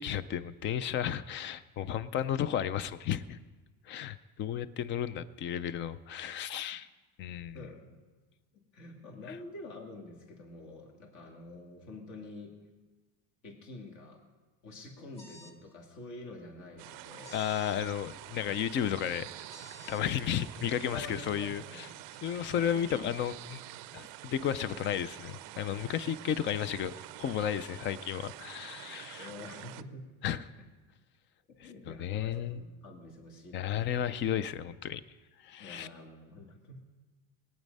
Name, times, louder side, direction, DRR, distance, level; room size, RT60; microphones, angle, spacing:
voice 1, 0.0-3.4 3.9-6.9 7.2-7.7 17.3-19.3 19.9-21.9 22.2-23.6 23.9-26.9 27.2-29.3 30.2-30.5 31.6-32.6 33.5-35.0 35.4-35.9, left 9 dB, 30° left, 16 dB, 0.4 m, -33 dB
voice 2, 7.5-8.0 8.5-12.5 13.4-14.2 14.6-17.5 20.9-21.8 22.5-23.0 29.2-30.1 30.6-30.7 31.6-34.0 35.6-36.9, left 2 dB, 50° left, 1 dB, 2.3 m, -47 dB
sound 1, 15.2-15.6 17.2-17.8 19.5-20.0, left 1 dB, 15° left, 1.1 m, -52 dB
sound 2, 16.8-29.8, right 16 dB, 55° right, 0.5 m, -47 dB
21.0 x 9.1 x 5.3 m, 1.3 s
cardioid pair, 180°, 39 cm